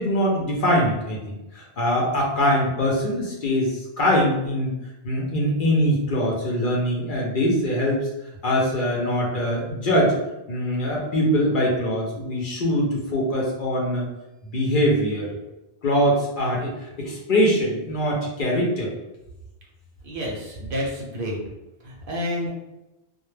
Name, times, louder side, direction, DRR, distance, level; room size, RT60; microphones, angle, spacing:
voice 1, 0.0-4.8 5.0-8.1 8.4-10.2 10.5-14.1 14.5-15.3 15.8-18.9, equal, 55° left, -2 dB, 0.7 m, -23 dB
voice 2, 20.0-21.4 21.8-22.5, equal, 60° right, -2 dB, 0.7 m, -29 dB
2.1 x 2.1 x 3.1 m, 0.98 s
omnidirectional pair, 1.1 m